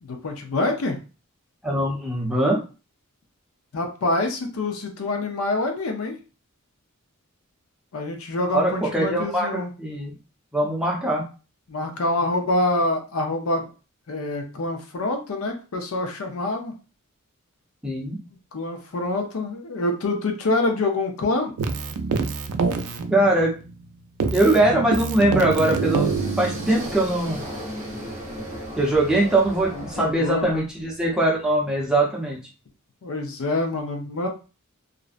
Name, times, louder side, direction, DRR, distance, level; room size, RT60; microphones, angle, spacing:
voice 1, 0.0-1.0 3.7-6.2 7.9-9.7 11.7-13.7 14.1-16.7 18.5-21.5 29.7-30.6 33.0-34.3, left 2 dB, 70° left, 4 dB, 0.5 m, -26 dB
voice 2, 1.6-2.6 8.5-10.1 10.5-11.2 17.8-18.2 23.1-23.5 24.3-26.1 26.4-27.4 28.8-32.4, right 1 dB, 5° right, -3 dB, 0.6 m, -21 dB
Keyboard (musical), 21.6-23.9 24.2-27.0, right 5 dB, 85° right, 0.3 m, -26 dB
sound 1, 25.5-30.6, equal, 30° right, 0.9 m, -36 dB
2.5 x 2.0 x 2.4 m, 0.33 s
head